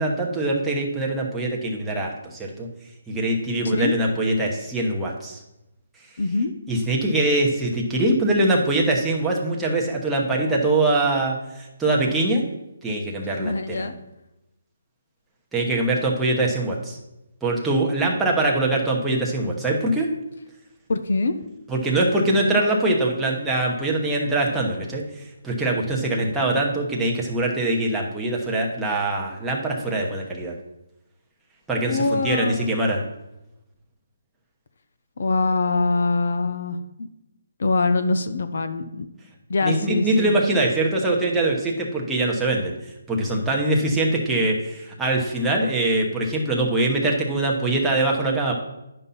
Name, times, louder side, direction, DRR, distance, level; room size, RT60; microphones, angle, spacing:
voice 1, 0.0-2.7 3.1-5.4 6.7-12.4 12.8-13.9 15.5-17.0 17.4-20.1 21.7-30.5 31.7-33.0 39.6-48.5, right 2 dB, 5° right, -3 dB, 1.0 m, -23 dB
voice 2, 6.2-6.5 13.4-13.9 20.9-21.3 31.9-32.7 35.2-37.1 37.6-39.1 39.5-40.3, left 3 dB, 65° left, 9 dB, 0.7 m, -23 dB
9.8 x 5.5 x 4.2 m, 0.92 s
hypercardioid pair, 165°, 0 cm